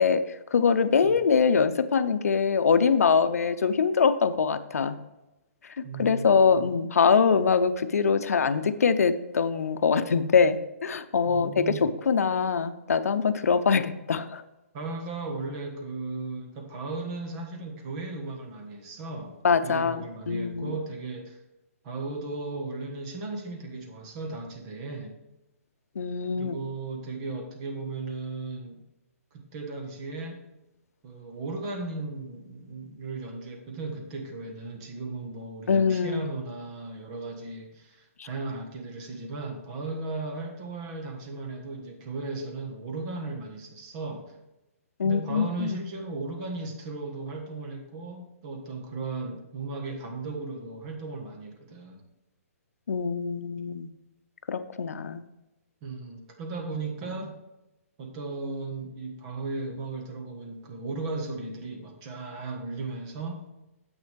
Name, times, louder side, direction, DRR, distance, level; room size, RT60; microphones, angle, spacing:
voice 1, 0.0-5.0 6.0-14.4 19.4-20.8 26.0-26.5 35.7-36.2 38.2-38.3 45.0-45.8 52.9-53.9 54.5-55.2, left 5 dB, 85° left, 11 dB, 0.7 m, -23 dB
voice 2, 5.8-6.6 11.3-11.9 14.7-19.4 19.6-21.4 21.8-25.2 26.3-28.8 29.3-30.4 31.0-44.3 45.0-52.0 55.8-57.4 58.0-63.4, right 3 dB, 25° right, 3 dB, 1.3 m, -36 dB
9.7 x 8.1 x 3.4 m, 0.97 s
hypercardioid pair, 170°, 8 cm